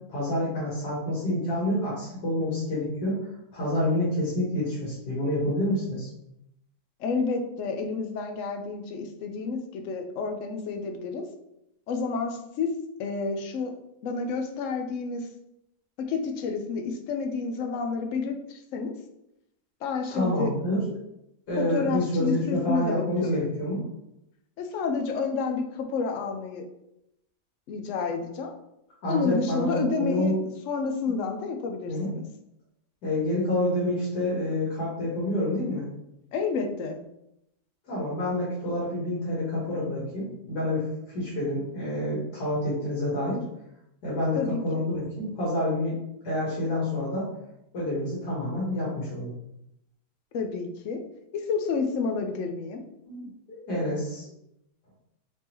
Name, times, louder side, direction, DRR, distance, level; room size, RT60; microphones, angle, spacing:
voice 1, 0.1-3.3 3.5-6.1 20.1-20.8 21.5-23.8 29.0-30.4 31.9-32.1 33.0-35.9 37.9-40.9 41.1-43.4 44.0-46.0 46.2-47.3 47.7-49.3 53.1-54.3, left 1 dB, 85° left, -7 dB, 2.0 m, -28 dB
voice 2, 7.0-11.2 11.9-12.7 13.0-13.7 14.0-15.3 16.0-18.9 19.8-20.5 21.6-23.5 24.6-26.6 27.7-28.5 29.1-30.4 30.7-32.2 36.3-37.0 44.4-44.6 50.3-51.0 51.3-52.8, left 4 dB, 65° left, 4 dB, 0.8 m, -29 dB
4.4 x 3.5 x 3.0 m, 0.82 s
omnidirectional pair, 1.7 m